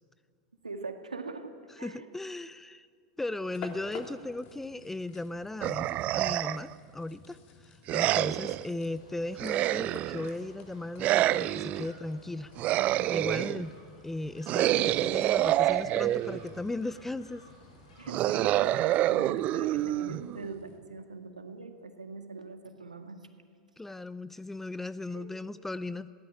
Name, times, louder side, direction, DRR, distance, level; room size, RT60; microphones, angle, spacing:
voice 1, 0.6-1.5 1.8-2.1 8.4-8.5 18.0-23.2 25.1-25.3, right 3 dB, 85° right, 6 dB, 2.0 m, -42 dB
voice 2, 1.7-2.9 3.2-7.4 7.6-12.5 13.1-13.8 14.0-17.4 23.8-26.1, left 2 dB, 5° left, 17 dB, 0.6 m, -37 dB
sound 1, 3.4-20.8, left 5 dB, 45° left, 3.3 m, -53 dB
sound 2, 5.6-6.7 7.9-8.6 9.4-10.3 11.0-11.9 12.6-13.6 14.5-16.5 18.1-20.5, right 14 dB, 40° right, 0.6 m, -27 dB
sound 3, 8.9-18.2, left 1 dB, 70° left, 6.8 m, -56 dB
20.0 x 17.0 x 9.3 m, 2.1 s
figure-of-eight pair, 85°, 4 cm